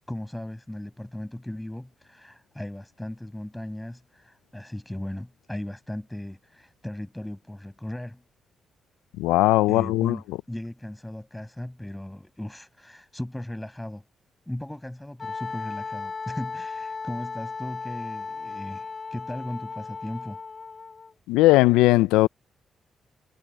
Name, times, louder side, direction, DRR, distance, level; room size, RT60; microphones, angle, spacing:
voice 1, 0.1-8.2 9.7-14.0 14.5-20.4, left 1 dB, 10° left, 6.8 m, -37 dB
voice 2, 9.2-10.2 21.3-22.3, left 18 dB, 90° left, 0.6 m, -18 dB
Wind instrument woodwind instrument, 15.2-21.2, left 4 dB, 45° left, 6.1 m, -36 dB
hypercardioid pair, 45°, 0 cm